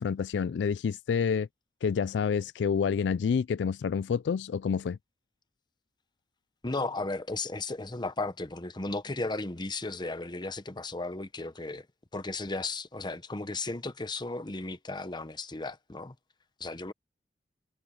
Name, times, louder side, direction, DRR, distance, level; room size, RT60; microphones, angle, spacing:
voice 1, 0.0-1.5 1.8-5.0, left 6 dB, 75° left, 0.3 m, -28 dB
voice 2, 6.6-11.9 12.1-16.1 16.6-16.9, left 3 dB, 25° left, 1.0 m, -35 dB
head